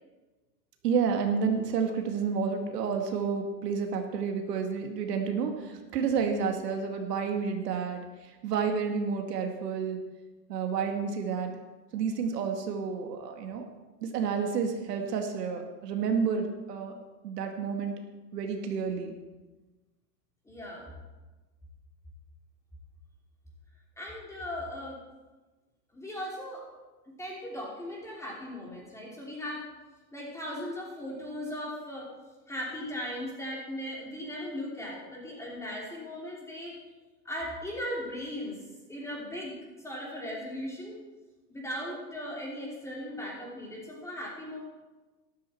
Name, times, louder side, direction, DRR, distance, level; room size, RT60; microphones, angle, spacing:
voice 1, 0.8-8.0 8.4-10.0 10.5-11.5 11.9-13.6 14.0-16.9 17.2-18.0 18.3-19.1, right 6 dB, 75° right, 4 dB, 2.0 m, -30 dB
voice 2, 20.4-20.9 24.0-25.0 25.9-26.7 27.2-29.7 30.1-32.1 32.5-36.8 37.2-38.6 38.9-41.0 41.5-44.6, equal, 5° left, -3 dB, 3.1 m, -38 dB
12.5 x 12.5 x 4.4 m, 1.2 s
hypercardioid pair, 140°, 49 cm